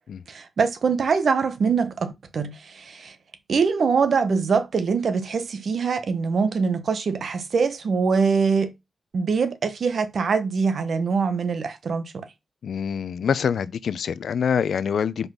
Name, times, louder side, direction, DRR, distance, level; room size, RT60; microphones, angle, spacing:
voice 1, 0.3-3.1 3.5-8.7 9.1-12.3, right 5 dB, 65° right, 1.1 m, -23 dB
voice 2, 12.6-15.3, left 7 dB, 85° left, 0.5 m, -25 dB
5.3 x 4.0 x 6.0 m
wide cardioid pair, 130°, 0 cm